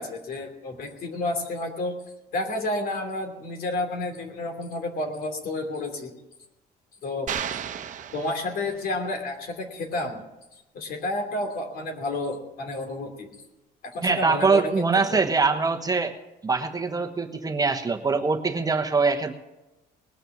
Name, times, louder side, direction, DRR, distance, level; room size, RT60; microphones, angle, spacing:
voice 1, 0.0-1.9 2.3-6.1 7.0-7.3 8.1-10.2 10.7-13.3 13.8-15.2, left 2 dB, 60° left, 4 dB, 2.9 m, -30 dB
sound 1, 7.3-9.0, right 8 dB, 50° right, 1.0 m, -34 dB
voice 2, 14.0-16.1 16.4-19.3, right 4 dB, 20° right, 4 dB, 1.1 m, -23 dB
19.5 x 6.6 x 9.1 m, 0.99 s
cardioid pair, 110°, 17 cm